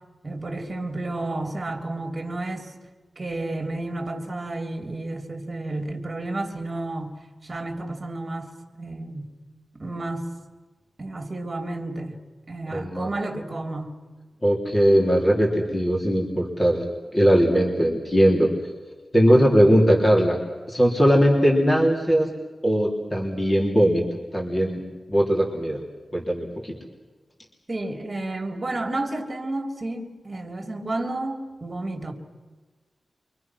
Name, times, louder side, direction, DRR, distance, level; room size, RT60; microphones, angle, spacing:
voice 1, 0.2-2.7 3.2-8.5 8.8-9.3 9.7-10.3 11.0-12.2 12.5-13.9 27.7-32.1, right 2 dB, 30° right, 3 dB, 3.2 m, -31 dB
voice 2, 12.7-13.1 14.4-16.9 17.1-18.5 19.1-20.4 20.7-22.3 22.6-24.0 24.3-24.8 25.1-25.8 26.1-26.7, equal, 20° left, -2 dB, 3.9 m, -19 dB
28.5 x 25.0 x 6.2 m, 1.3 s
wide cardioid pair, 110°, 0 cm